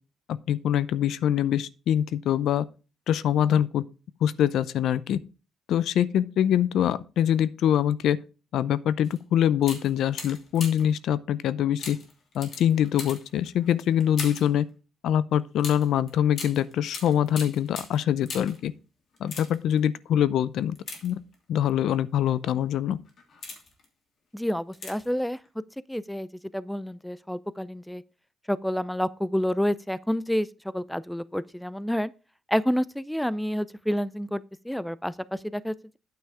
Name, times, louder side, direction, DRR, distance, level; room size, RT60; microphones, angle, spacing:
voice 1, 0.3-2.7 3.1-3.8 4.2-5.2 5.7-8.2 8.5-12.0 12.3-14.7 15.0-18.7 19.2-20.8 21.0-21.2 21.5-23.0, left 10 dB, 80° left, 0.5 m, -24 dB
sound 1, 9.0-9.2 9.6-11.0 11.8-14.6 15.6-18.7 19.1-19.8 20.7-21.6 22.3-22.5 23.0-23.8 24.7-25.2 25.4-25.5, left 4 dB, 60° left, 2.8 m, -40 dB
voice 2, 24.3-25.4 25.9-26.3 26.5-28.0 28.5-30.5 30.7-32.1 32.5-36.0, equal, 5° left, 0.5 m, -29 dB
9.1 x 5.6 x 4.8 m
cardioid pair, 90°, 0 cm